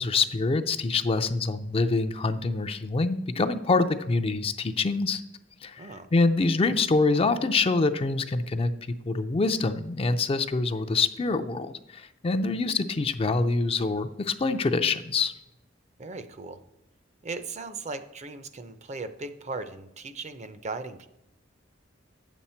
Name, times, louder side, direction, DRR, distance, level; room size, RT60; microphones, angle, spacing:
voice 1, 0.0-5.2 5.6-8.7 9.0-15.3, left 3 dB, 30° left, 9 dB, 0.4 m, -25 dB
voice 2, 16.0-16.6 17.2-21.1, right 3 dB, 35° right, 10 dB, 0.6 m, -37 dB
9.3 x 7.1 x 4.3 m, 0.85 s
head